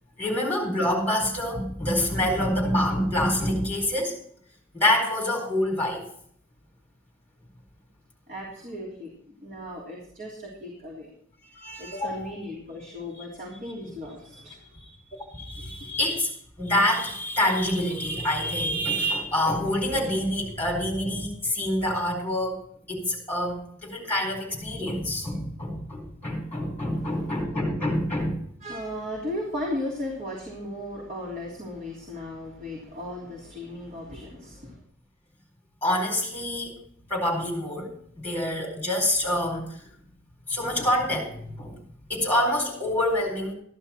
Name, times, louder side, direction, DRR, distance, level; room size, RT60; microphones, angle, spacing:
voice 1, 0.2-4.2 4.7-6.0 11.6-12.3 15.3-22.6 22.9-28.4 35.8-36.8 37.1-37.9 38.2-39.9 40.5-41.7 42.1-43.5, left 1 dB, 10° left, 0 dB, 4.5 m, -26 dB
voice 2, 8.3-9.1 9.4-11.1 11.8-14.8 15.6-15.9 26.9-27.4 28.6-34.8, left 1 dB, 40° right, -4 dB, 3.3 m, -36 dB
14.0 x 11.0 x 4.5 m, 0.64 s
head